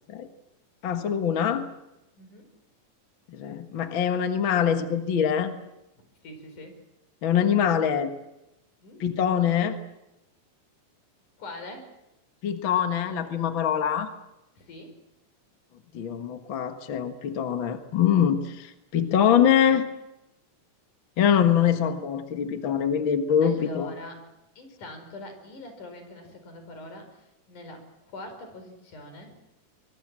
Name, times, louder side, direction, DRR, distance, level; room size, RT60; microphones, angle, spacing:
voice 1, 0.8-1.6 3.3-5.5 7.2-8.1 9.0-9.8 12.4-14.1 15.9-19.9 21.2-23.9, left 8 dB, 45° left, 7 dB, 1.8 m, -24 dB
voice 2, 2.2-2.5 6.2-6.7 8.8-9.2 11.4-11.9 14.6-14.9 23.4-24.2 24.6-29.3, left 2 dB, 70° left, 6 dB, 6.1 m, -43 dB
24.5 x 22.5 x 7.5 m, 0.92 s
omnidirectional pair, 3.7 m